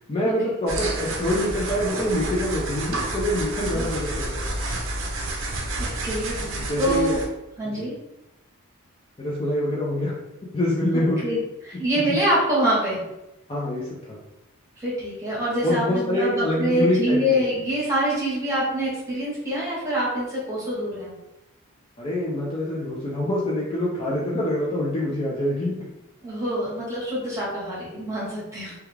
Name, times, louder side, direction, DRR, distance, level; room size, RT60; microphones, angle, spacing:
voice 1, 0.1-4.6 6.6-7.2 7.8-7.9 9.2-10.1 10.5-11.2 13.5-14.2 15.6-17.4 22.0-25.7, left 1 dB, 25° left, -6 dB, 0.4 m, -25 dB
sound 1, 0.7-7.3, right 2 dB, 55° right, 0.5 m, -29 dB
voice 2, 5.8-7.2 7.6-7.9 10.9-11.4 11.6-13.0 14.8-21.1 26.2-28.7, equal, 15° right, -7 dB, 0.9 m, -25 dB
2.3 x 2.3 x 3.1 m, 0.94 s
head